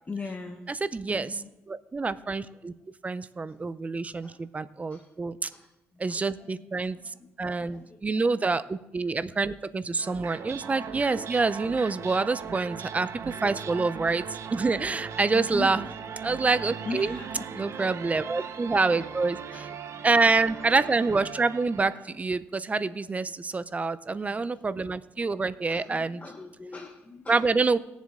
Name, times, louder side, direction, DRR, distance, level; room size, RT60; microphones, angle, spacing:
voice 1, 0.1-0.7 1.1-1.6 2.5-2.6 3.5-3.6 4.2-4.4 4.9-5.1 5.5-8.3 9.0-9.2 9.9-10.2 15.3-15.7 16.8-18.0 18.3-19.2 19.5-20.3 20.6-20.7 22.7-23.3 23.7-23.8 24.1-24.7 25.7-27.8, left 3 dB, 25° left, 3 dB, 0.9 m, -42 dB
voice 2, 0.9-1.4 1.7-2.7 3.0-5.5 6.0-7.0 7.4-14.2 14.5-15.8 16.2-17.1 17.6-19.4 20.0-26.2 27.3-27.8, right 3 dB, 25° right, 15 dB, 0.6 m, -27 dB
sound 1, 10.0-22.2, right 7 dB, 60° right, 0.8 m, -39 dB
19.5 x 7.3 x 3.7 m, 0.91 s
cardioid pair, 85°, 5 cm